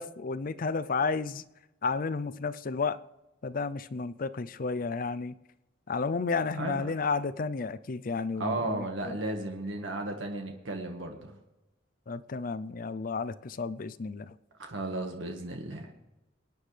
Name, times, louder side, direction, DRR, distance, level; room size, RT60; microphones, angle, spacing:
voice 1, 0.0-1.4 1.8-3.0 3.4-5.3 5.9-9.2 12.1-14.3, left 4 dB, 45° left, 0.5 m, -32 dB
voice 2, 8.4-11.3 14.6-15.9, right 2 dB, 85° right, 1.6 m, -34 dB
24.0 x 9.5 x 3.3 m
head